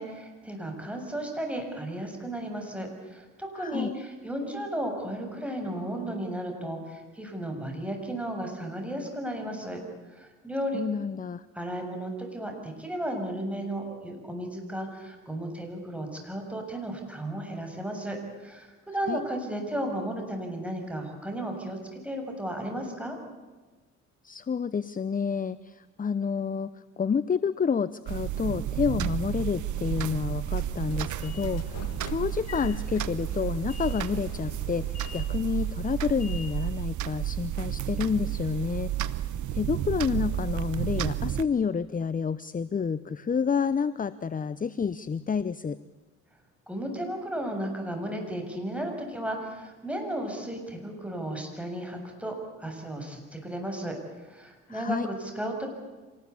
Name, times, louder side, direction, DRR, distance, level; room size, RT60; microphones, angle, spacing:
voice 1, 0.0-9.8 10.1-10.8 11.5-23.2 46.7-55.7, right 1 dB, 5° right, 3 dB, 7.3 m, -34 dB
voice 2, 3.6-3.9 10.7-11.5 19.1-19.2 24.2-45.8 54.7-55.1, left 6 dB, 25° left, 15 dB, 0.8 m, -29 dB
sound 1, 28.1-41.4, right 11 dB, 75° right, 1.1 m, -31 dB
Train / Sliding door, 30.4-36.9, left 6 dB, 60° left, 2.4 m, -46 dB
26.0 x 19.5 x 8.5 m, 1.3 s
cardioid pair, 90°, 30 cm